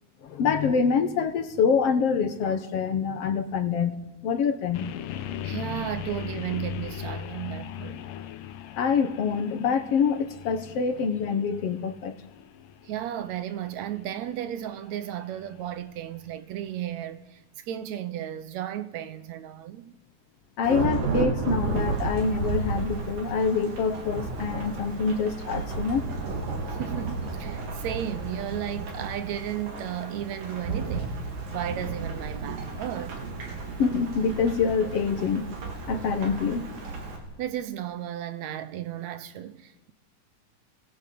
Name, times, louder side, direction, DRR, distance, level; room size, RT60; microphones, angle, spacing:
voice 1, 0.2-4.0 4.2-4.9 8.8-12.2 20.6-26.0 33.8-35.5 35.9-36.7, left 6 dB, 55° left, 2.0 m, -25 dB
sound 1, 4.7-16.7, left 10 dB, 90° left, 2.7 m, -39 dB
voice 2, 5.4-8.1 12.8-19.9 26.7-31.2 31.5-33.2 37.4-39.9, right 11 dB, 70° right, 2.0 m, -34 dB
Thunderstorm / Rain, 20.6-37.2, right 4 dB, 85° right, 5.2 m, -33 dB
23.0 x 18.0 x 8.6 m
omnidirectional pair, 3.7 m